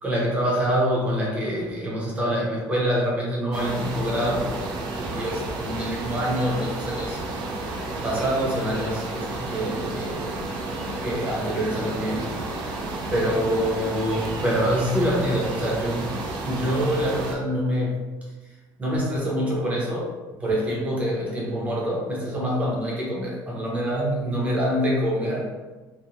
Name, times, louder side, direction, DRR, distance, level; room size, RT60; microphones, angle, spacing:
voice 1, 0.0-4.5 5.0-7.2 8.0-10.4 11.0-12.3 13.1-17.9 18.8-20.1 20.4-25.4, equal, 15° right, -4 dB, 0.6 m, -25 dB
sound 1, 3.5-17.4, right 2 dB, 65° right, 0.4 m, -31 dB
2.5 x 2.0 x 2.9 m, 1.2 s
cardioid pair, 175°, 9 cm